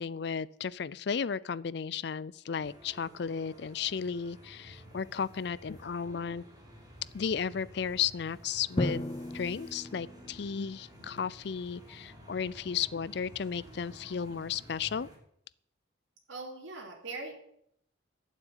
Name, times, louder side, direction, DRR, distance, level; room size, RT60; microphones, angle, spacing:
voice 1, 0.0-6.4 7.1-9.0 9.3-15.1, left 7 dB, 60° left, 20 dB, 0.4 m, -34 dB
sound 1, 2.6-15.2, equal, 20° right, 3.2 m, -53 dB
Drum, 8.8-10.7, left 1 dB, 25° left, 0.7 m, -35 dB
voice 2, 16.3-17.3, right 3 dB, 90° right, -1 dB, 2.9 m, -41 dB
12.0 x 7.5 x 9.0 m, 0.72 s
head